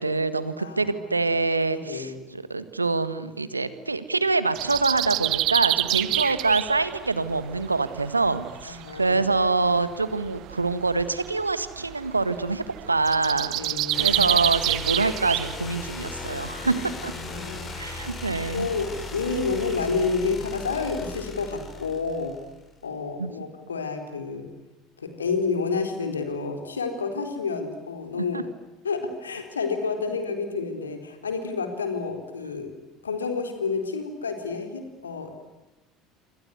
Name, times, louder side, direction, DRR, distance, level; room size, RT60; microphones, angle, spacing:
voice 1, 0.0-13.6 14.0-17.1 17.8-18.7 23.2-23.3 28.3-28.4, right 3 dB, 85° right, 14 dB, 1.6 m, -25 dB
voice 2, 0.6-1.3 1.7-2.2 6.0-6.2 8.7-9.2 13.5-14.2 16.8-17.7 18.5-22.4 22.8-24.5 25.0-28.4 28.8-32.7 33.0-35.4, left 4 dB, 80° left, 7 dB, 4.2 m, -30 dB
sound 1, 4.5-19.9, right 15 dB, 50° right, 1.1 m, -30 dB
sound 2, 13.9-22.7, left 4 dB, 30° left, 6.1 m, -38 dB
27.5 x 26.5 x 8.1 m, 1.0 s
figure-of-eight pair, 65°, 0 cm